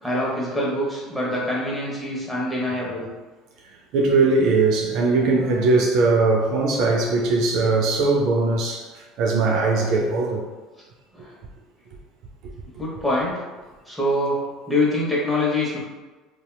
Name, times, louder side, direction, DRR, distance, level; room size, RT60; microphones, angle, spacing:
voice 1, 0.0-3.1 11.1-11.3 12.8-13.4 13.9-15.8, left 1 dB, 5° left, -5 dB, 0.9 m, -25 dB
voice 2, 3.9-10.4, right 3 dB, 65° right, 0 dB, 0.4 m, -20 dB
2.7 x 2.2 x 2.2 m, 1.3 s
hypercardioid pair, 75°, 0 cm